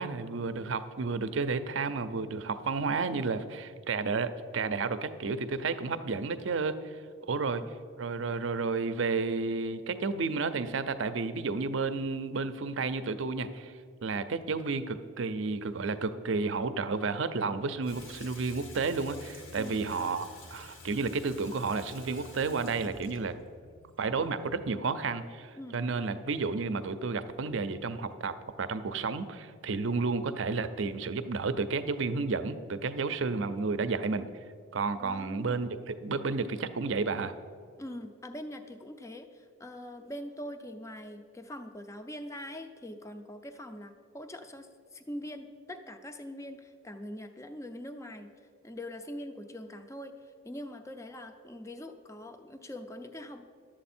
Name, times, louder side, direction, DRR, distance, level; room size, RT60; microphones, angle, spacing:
voice 1, 0.0-6.8 7.3-7.6 8.0-13.7 14.0-23.3 24.0-34.3 34.7-37.3, right 4 dB, 65° right, 11 dB, 0.5 m, -31 dB
Water tap faucet / Sink (filling or washing), 17.8-24.9, left 2 dB, 65° left, 1.3 m, -50 dB
voice 2, 19.6-19.9 25.6-25.8 35.0-35.7 37.8-48.3 48.6-50.1 50.4-53.4, left 1 dB, 15° left, 8 dB, 0.5 m, -43 dB
11.5 x 7.6 x 4.3 m, 2.1 s
head